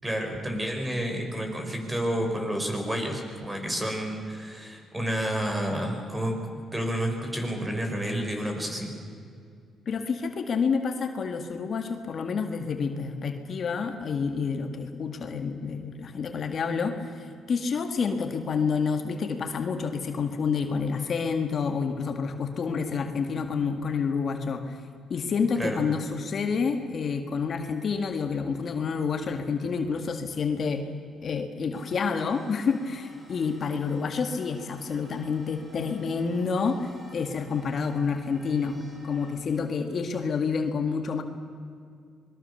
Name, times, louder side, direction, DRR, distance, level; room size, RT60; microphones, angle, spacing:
voice 1, 0.0-6.4 6.7-8.9 25.6-25.8, equal, 15° right, 3 dB, 5.8 m, -30 dB
voice 2, 9.9-24.8 25.1-30.8 31.2-38.8 39.0-41.2, left 5 dB, 55° left, 6 dB, 1.9 m, -28 dB
sound 1, 31.7-39.4, right 1 dB, 35° right, 7.7 m, -50 dB
26.0 x 21.5 x 7.1 m, 2.4 s
cardioid pair, 90°, 0 cm